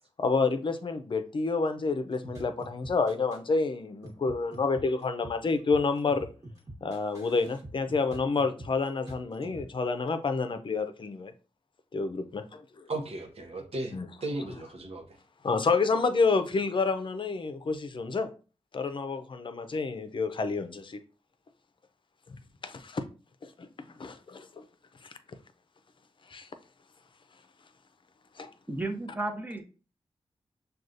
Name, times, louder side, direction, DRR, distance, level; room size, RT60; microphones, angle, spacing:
voice 1, 0.2-6.3 6.8-11.3 11.9-12.9 13.9-14.1 15.4-18.3 18.7-21.0 22.6-23.0 23.4-23.7 24.0-24.6 25.0-25.2 26.3-26.5 28.4-28.5, left 4 dB, 50° left, 0.5 m, -29 dB
sound 1, 2.1-3.4 4.0-9.6, right 1 dB, 35° right, 1.3 m, -44 dB
voice 2, 12.9-14.0 14.2-15.0, right 2 dB, 65° right, 0.8 m, -35 dB
voice 3, 28.7-29.6, right 2 dB, 15° right, 0.8 m, -33 dB
6.2 x 2.3 x 2.6 m
cardioid pair, 60°, 11 cm